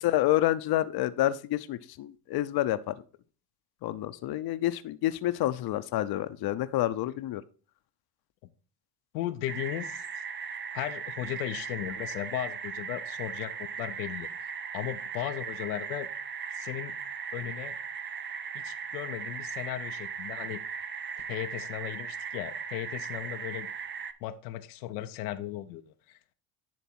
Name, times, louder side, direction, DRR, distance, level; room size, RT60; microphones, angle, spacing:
voice 1, 0.0-2.9 3.8-7.4, left 14 dB, 50° left, 13 dB, 0.7 m, -28 dB
voice 2, 9.1-10.0 10.7-14.3 14.7-16.1 16.5-16.9 17.3-17.8 18.5-20.6 21.2-23.7 24.2-26.2, left 13 dB, 85° left, 9 dB, 0.7 m, -36 dB
sound 1, 9.5-24.1, right 6 dB, 25° right, 0.6 m, -38 dB
10.0 x 3.5 x 4.4 m, 0.38 s
supercardioid pair, 80°, 47 cm